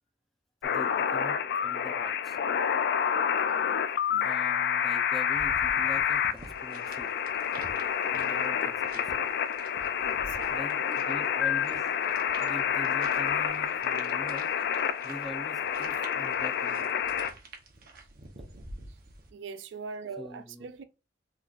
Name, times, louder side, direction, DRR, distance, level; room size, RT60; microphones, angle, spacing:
sound 1, 0.6-17.3, left 8 dB, 60° left, 0.3 m, -28 dB
voice 1, 0.6-2.4 3.1-3.3 4.2-7.1 8.0-9.3 10.5-11.9 12.4-14.5 15.0-16.9 17.2-17.4 20.2-20.7, equal, ahead, 0.5 m, -44 dB
sound 2, 5.3-19.3, right 2 dB, 55° right, 0.8 m, -49 dB
voice 2, 10.0-11.0 19.3-20.8, right 5 dB, 70° right, 0.4 m, -42 dB
4.1 x 3.1 x 2.4 m
head